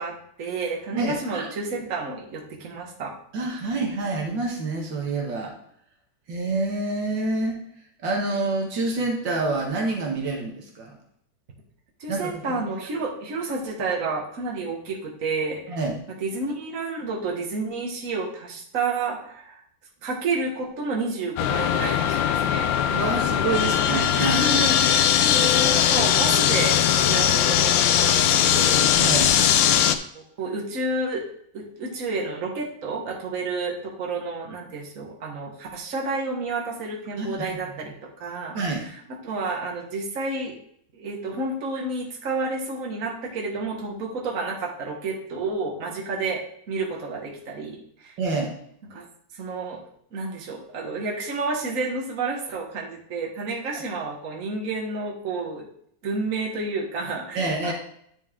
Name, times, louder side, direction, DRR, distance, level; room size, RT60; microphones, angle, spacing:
voice 1, 0.0-3.1 12.0-15.8 16.2-19.6 20.0-22.7 23.5-29.8 30.1-31.2 31.5-37.9 38.2-39.0 39.2-40.6 40.9-48.1 48.9-49.0 49.3-49.8 50.1-55.6 56.0-57.7, right 3 dB, 45° right, -2 dB, 1.7 m, -30 dB
voice 2, 0.9-1.5 3.3-5.5 6.3-7.6 8.0-11.0 12.1-12.6 15.7-16.0 22.9-24.4 29.0-29.3 37.2-37.4 38.5-38.9 48.2-48.5 57.3-57.7, right 3 dB, 70° right, 0 dB, 1.9 m, -27 dB
sound 1, 21.4-30.0, left 10 dB, 75° left, 1.3 m, -20 dB
9.5 x 5.2 x 3.7 m, 0.69 s
omnidirectional pair, 2.1 m